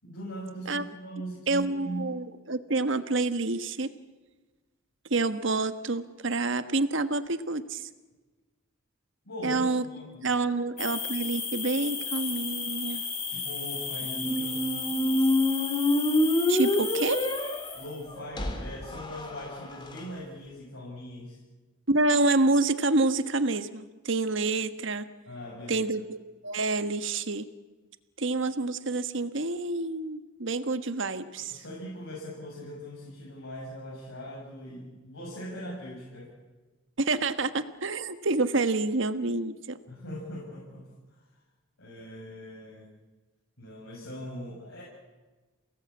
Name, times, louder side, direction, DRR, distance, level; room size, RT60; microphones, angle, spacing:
voice 1, 0.0-2.2 9.2-10.6 13.3-14.7 17.7-21.4 25.2-25.9 31.3-36.3 39.8-41.2 41.8-42.9 43.6-44.8, equal, 75° left, -3 dB, 6.7 m, -40 dB
voice 2, 1.5-3.9 5.1-7.9 9.4-9.8 10.2-13.0 14.3-14.4 16.5-17.3 21.9-25.0 25.7-27.4 28.2-31.6 37.0-39.8, right 3 dB, 65° right, 10 dB, 1.4 m, -28 dB
sound 1, 10.8-18.0, left 5 dB, 40° left, 5.2 m, -34 dB
sound 2, 14.1-20.0, left 1 dB, 25° left, 3.0 m, -27 dB
29.0 x 18.0 x 8.5 m, 1.3 s
head